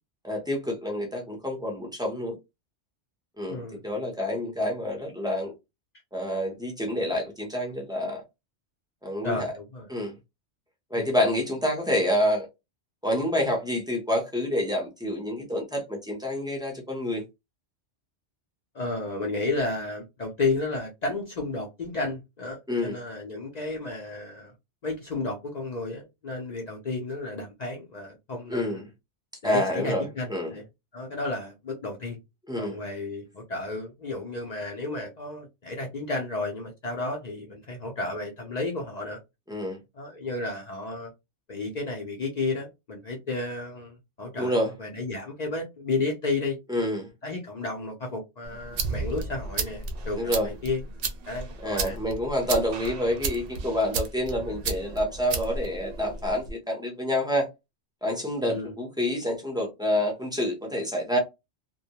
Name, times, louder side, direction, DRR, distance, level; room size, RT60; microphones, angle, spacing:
voice 1, 0.2-2.3 3.4-5.5 6.1-8.2 9.0-9.5 9.9-10.1 10.9-12.5 13.0-17.2 22.7-23.0 28.5-28.8 29.4-30.5 32.5-32.8 39.5-39.8 44.4-44.7 46.7-47.1 50.2-50.5 51.6-57.5 58.0-61.2, left 1 dB, 5° right, 0.4 m, -28 dB
voice 2, 9.2-9.9 10.9-11.1 18.7-24.5 24.8-28.8 29.4-30.7 30.9-32.2 32.6-39.2 39.9-41.1 41.5-46.6 47.2-50.8 51.3-52.0 52.8-52.9 58.4-58.7, left 3 dB, 50° left, 0.5 m, -32 dB
sound 1, 48.4-56.5, right 4 dB, 65° right, 0.7 m, -34 dB
2.2 x 2.1 x 2.7 m
omnidirectional pair, 1.2 m